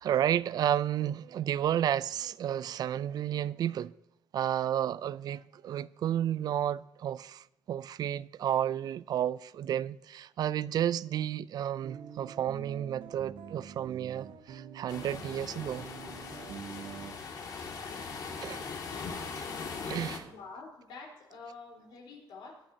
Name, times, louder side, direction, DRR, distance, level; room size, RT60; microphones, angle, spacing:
voice 1, 0.0-3.9 4.3-15.9 18.4-18.6 19.3-19.5 19.9-20.3, right 10 dB, 60° right, 0.4 m, -32 dB
sound 1, 11.8-17.2, right 7 dB, 80° right, 1.2 m, -46 dB
sound 2, 14.9-20.2, left 5 dB, 55° left, 2.3 m, -40 dB
voice 2, 20.2-22.6, left 4 dB, 85° left, 4.1 m, -47 dB
20.0 x 11.5 x 2.8 m
cardioid pair, 115°, 8 cm